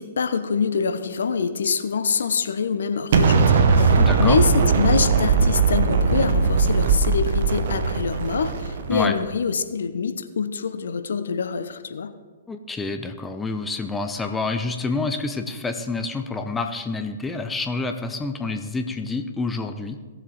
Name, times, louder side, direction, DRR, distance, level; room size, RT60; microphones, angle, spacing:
voice 1, 0.0-12.1, left 5 dB, 65° left, 9 dB, 0.8 m, -25 dB
Explosion, 3.1-9.1, right 5 dB, 50° right, 1.0 m, -19 dB
voice 2, 4.0-4.4 8.9-9.2 12.5-20.0, left 3 dB, 10° left, 6 dB, 0.7 m, -28 dB
16.5 x 7.6 x 3.9 m, 1.4 s
figure-of-eight pair, 115°, 0 cm